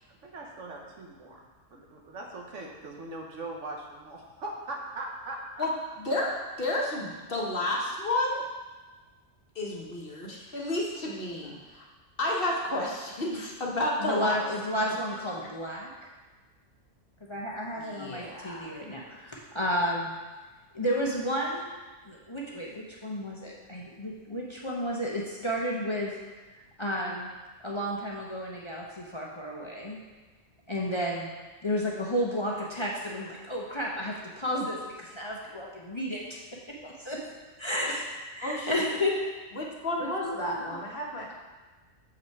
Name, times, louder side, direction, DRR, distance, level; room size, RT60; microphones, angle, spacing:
voice 1, 0.1-1.4 1.7-5.7, right 2 dB, 70° right, 0 dB, 1.4 m, -40 dB
voice 2, 6.0-8.4 9.5-11.8 12.2-14.4 14.8-14.9 17.8-18.7 38.4-38.9 39.5-41.3, left 1 dB, 50° left, -2 dB, 1.3 m, -31 dB
voice 3, 14.0-15.9 17.2-20.2 20.7-21.7 22.0-26.1 26.8-27.3 27.6-30.0 30.7-31.3 31.6-36.3 36.5-37.2 37.6-38.1 38.3-39.1 40.0-40.8, equal, 25° left, -3 dB, 0.9 m, -32 dB
7.3 x 5.5 x 4.7 m, 1.3 s
omnidirectional pair, 1.3 m